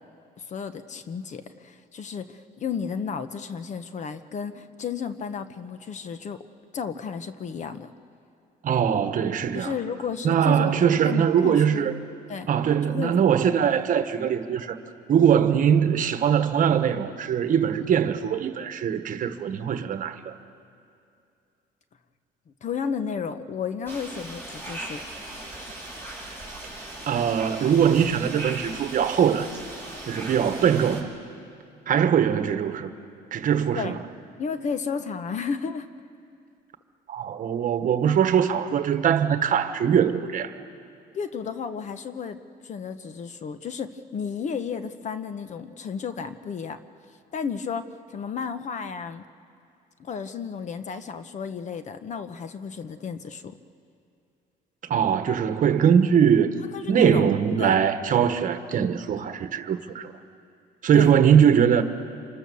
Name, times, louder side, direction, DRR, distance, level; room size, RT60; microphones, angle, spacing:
voice 1, 0.5-6.4 6.7-7.9 9.5-10.8 11.0-11.9 12.3-12.5 12.8-13.1 22.6-25.0 33.7-34.0 34.4-35.9 41.1-42.4 42.6-46.8 47.3-49.2 50.0-53.6 56.7-57.3 57.6-57.8 60.9-61.2, left 6 dB, 45° left, 1.1 m, -33 dB
voice 2, 8.6-9.7 10.2-11.9 12.5-14.8 15.1-20.3 27.1-29.5 30.1-31.1 31.9-32.9 33.3-34.0 37.1-40.5 54.8-56.5 56.9-60.1 60.8-61.8, right 8 dB, 50° right, 1.3 m, -21 dB
sound 1, 23.9-31.0, right 1 dB, 15° left, 5.2 m, -38 dB
27.0 x 24.5 x 7.0 m
cardioid pair, 110°, 17 cm